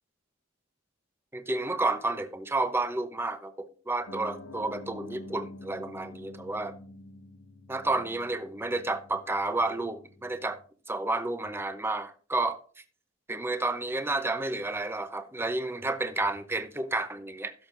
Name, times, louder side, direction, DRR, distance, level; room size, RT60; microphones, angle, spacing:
voice 1, 1.3-6.7 7.7-10.6 10.9-12.6 13.3-17.5, right 2 dB, 10° right, 0.7 m, -31 dB
Piano, 4.1-10.6, left 1 dB, 75° left, 1.4 m, -47 dB
16.5 x 7.2 x 2.6 m
head